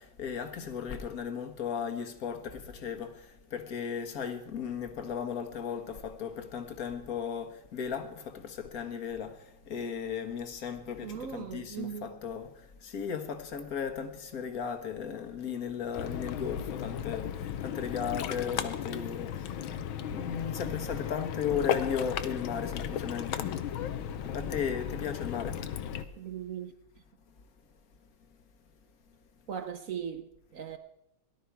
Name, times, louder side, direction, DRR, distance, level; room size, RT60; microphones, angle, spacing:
voice 1, 0.0-23.5 24.1-25.6, left 7 dB, 50° left, 1.6 m, -36 dB
voice 2, 11.0-12.2 26.2-26.7 29.5-30.8, right 8 dB, 65° right, 0.8 m, -38 dB
Ocean, 15.9-26.0, left 9 dB, 75° left, 1.6 m, -35 dB
18.0 x 12.0 x 4.6 m
omnidirectional pair, 2.3 m